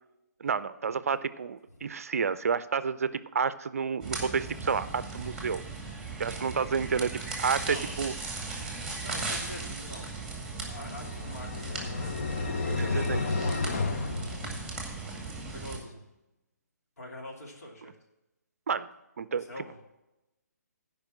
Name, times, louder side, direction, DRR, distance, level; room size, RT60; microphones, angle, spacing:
voice 1, 0.4-5.6 6.2-8.1 12.8-13.2 18.7-18.9 19.2-19.5, right 6 dB, 55° right, 15 dB, 0.5 m, -30 dB
sound 1, 4.0-15.8, right 3 dB, 5° right, 2.2 m, -37 dB
voice 2, 9.0-10.1 10.5-12.2 12.7-13.8 15.5-16.0 17.0-17.9 19.4-19.8, left 1 dB, 60° left, -1 dB, 2.9 m, -44 dB
sound 2, 10.6-15.1, left 3 dB, 45° left, 0.8 m, -32 dB
14.5 x 5.5 x 6.1 m, 0.96 s
figure-of-eight pair, 135°, 9 cm